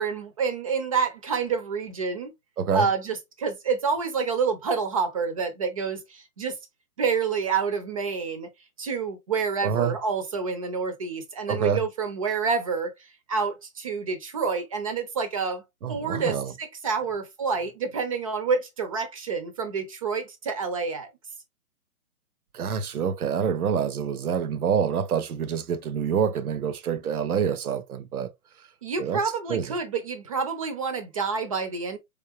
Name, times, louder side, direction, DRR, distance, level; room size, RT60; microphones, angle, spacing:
voice 1, 0.0-2.3 2.7-6.6 7.0-8.5 8.8-12.9 13.3-15.6 15.9-21.1 28.8-32.0, right 5 dB, 25° right, 0.5 m, -28 dB
voice 2, 2.6-2.9 9.6-9.9 11.5-11.8 15.8-16.5 22.5-28.3 29.0-29.2 29.5-29.8, right 7 dB, 75° right, 0.8 m, -26 dB
4.1 x 3.6 x 2.7 m
figure-of-eight pair, 135°, 45 cm